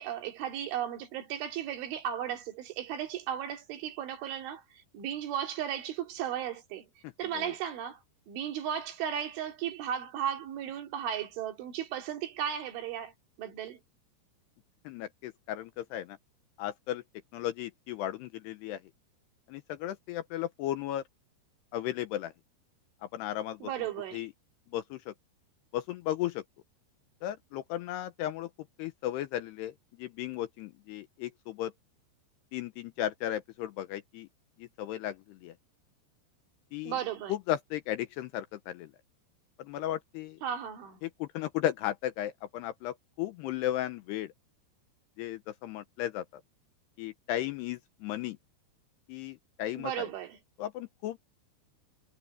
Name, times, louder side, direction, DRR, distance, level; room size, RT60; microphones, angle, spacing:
voice 1, 0.0-4.6 4.9-6.9 7.2-8.0 8.3-13.1 13.4-13.8 23.6-24.3 36.8-37.3 40.4-41.0 49.8-50.4, right 9 dB, 80° right, 4.9 m, -35 dB
voice 2, 14.9-16.2 16.6-17.0 17.3-18.8 19.5-21.0 21.7-22.3 23.1-23.7 24.1-24.3 24.7-25.1 25.7-26.4 27.2-28.5 28.8-29.7 30.0-31.7 32.5-34.3 34.6-35.5 36.7-37.0 37.3-38.9 39.6-40.4 41.0-44.3 45.2-46.2 47.0-48.4 49.1-50.1 50.6-51.2, left 13 dB, 80° left, 2.5 m, -35 dB
omnidirectional pair, 5.4 m